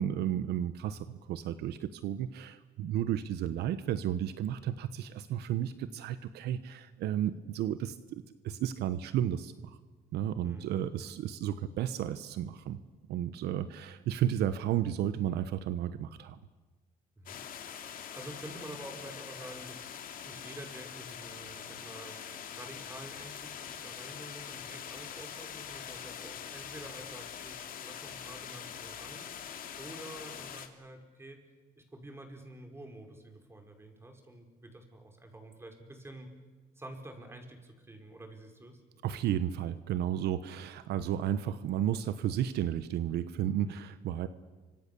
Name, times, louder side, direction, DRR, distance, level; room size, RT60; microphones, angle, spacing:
voice 1, 0.0-9.8 10.1-12.8 13.1-16.4 39.0-44.3, right 10 dB, 75° right, 12 dB, 1.1 m, -33 dB
sound 1, 17.3-30.7, left 8 dB, 55° left, 2.7 m, -44 dB
voice 2, 17.7-19.9 20.3-22.2 22.5-29.3 29.8-31.4 31.8-36.3 36.8-38.8, right 1 dB, 15° right, 4 dB, 5.3 m, -48 dB
29.0 x 25.5 x 7.0 m, 1.3 s
cardioid pair, 110°, 17 cm